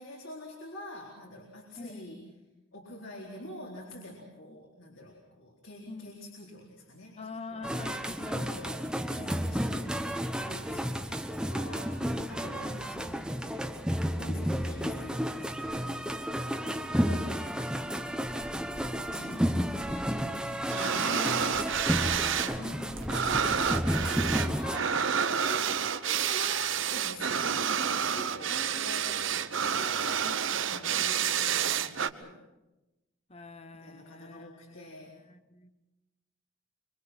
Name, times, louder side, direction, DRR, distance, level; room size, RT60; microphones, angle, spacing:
voice 1, 0.0-2.2 2.7-7.2 7.5-7.6 8.3-10.1 10.4-13.6 14.2-17.6 18.9-21.7 22.0-22.7 24.1-30.1 30.7-32.4 33.8-35.2, left 1 dB, 75° left, -2 dB, 4.1 m, -46 dB
voice 2, 1.8-2.1 3.0-3.3 4.5-4.6 5.9-6.3 7.2-9.0 12.0-12.9 21.0-21.7 22.5-24.1 27.4-27.8 28.5-29.1 30.2-31.2 33.3-35.0 35.3-35.9, left 2 dB, 30° left, 9 dB, 1.2 m, -46 dB
sound 1, 7.6-24.8, equal, 5° right, 1.0 m, -32 dB
sound 2, 20.7-22.5 22.8-32.1, right 8 dB, 70° right, 1.0 m, -29 dB
25.5 x 24.0 x 6.1 m, 1.0 s
head